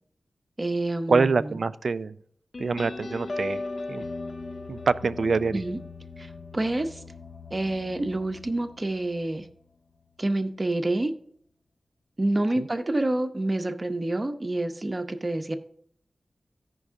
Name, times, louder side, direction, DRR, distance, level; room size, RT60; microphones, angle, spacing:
voice 1, 0.6-1.3 5.5-5.8 6.2-7.0 7.5-9.5 10.2-11.1 12.2-15.5, right 2 dB, 35° right, 7 dB, 0.7 m, -28 dB
voice 2, 1.1-2.2 2.6-3.6 3.9-4.0 4.7-5.6 12.6-12.7, right 4 dB, 70° right, 15 dB, 0.3 m, -25 dB
sound 1, 2.5-9.7, left 3 dB, 60° left, 0.5 m, -38 dB
14.0 x 5.3 x 3.6 m, 0.64 s
wide cardioid pair, 65°, 0 cm